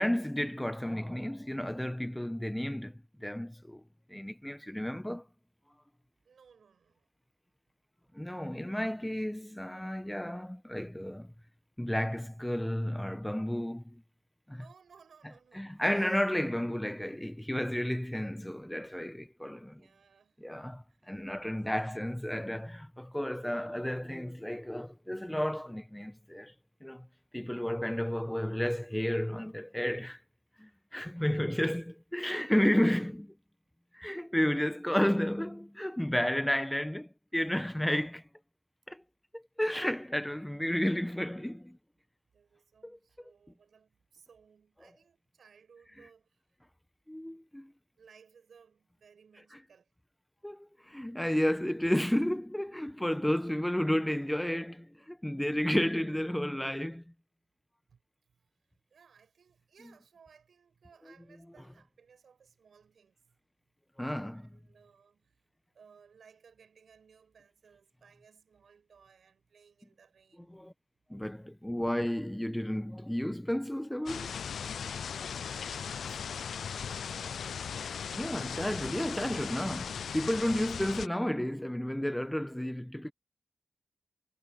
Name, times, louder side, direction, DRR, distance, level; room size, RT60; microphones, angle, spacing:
voice 1, 0.0-3.8 4.1-5.2 8.1-11.3 11.8-14.0 14.5-14.6 15.5-19.8 20.4-26.5 26.8-27.1 27.3-30.2 30.6-33.4 33.9-38.2 38.9-39.0 39.3-41.8 42.8-43.0 47.1-47.7 50.4-57.0 64.0-64.5 70.5-70.7 71.1-74.3 78.1-83.1, equal, 5° left, 1.1 m, -32 dB
voice 2, 6.2-7.1 14.5-15.9 19.7-20.4 20.9-21.2 30.6-30.7 32.7-32.9 42.3-46.4 48.0-49.9 57.9-58.0 58.3-58.4 58.9-63.3 64.3-65.3 65.7-70.6 76.1-76.2 76.9-78.0, right 6 dB, 80° right, 6.9 m, -61 dB
sound 1, 74.1-81.1, left 7 dB, 90° left, 0.3 m, -38 dB
cardioid pair, 65°, 0 cm